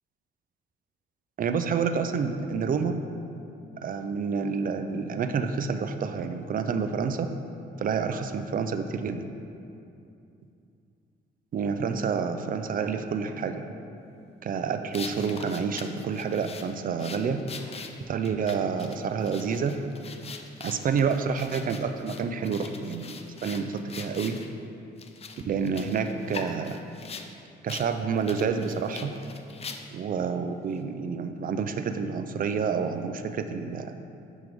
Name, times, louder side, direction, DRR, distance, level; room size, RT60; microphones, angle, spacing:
voice 1, 1.4-2.9 3.8-7.3 7.8-9.2 11.5-13.6 14.4-17.4 18.1-19.8 20.6-24.4 25.4-26.8 27.6-29.1 29.9-33.9, right 6 dB, 45° right, 8 dB, 0.4 m, -28 dB
sound 1, 14.9-24.5 25.0-27.3 27.7-27.9 28.2-30.1, left 5 dB, 30° left, 0.4 m, -42 dB
9.1 x 3.6 x 3.5 m, 2.7 s
cardioid pair, 90°, 20 cm